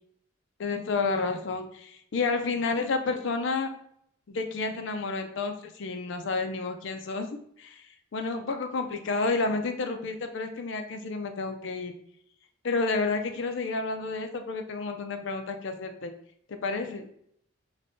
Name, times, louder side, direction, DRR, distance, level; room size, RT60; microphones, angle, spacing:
voice 1, 0.6-3.7 4.3-7.8 8.1-11.9 12.6-16.1 16.5-17.1, left 3 dB, 60° left, 6 dB, 0.4 m, -30 dB
5.1 x 2.2 x 2.6 m, 0.71 s
head